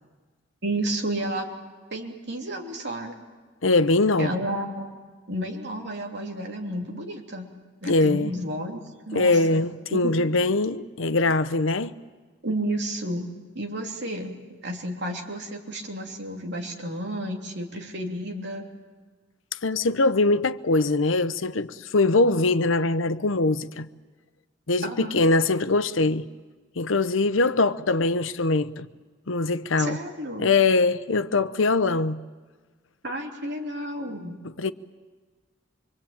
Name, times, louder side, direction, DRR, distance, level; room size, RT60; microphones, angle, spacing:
voice 1, 0.6-1.5 1.9-3.2 4.2-4.9 5.3-7.5 7.8-9.6 9.9-10.1 12.4-13.3 13.5-18.7 24.8-25.2 29.8-30.5 33.0-34.4, right 1 dB, 60° right, 3.1 m, -31 dB
voice 2, 3.6-4.3 7.9-8.3 9.1-11.9 19.6-23.9 24.7-26.3 26.8-28.9 29.3-30.0 30.4-32.2 34.6-34.7, left 3 dB, 90° left, 0.9 m, -22 dB
25.0 x 24.0 x 8.9 m
head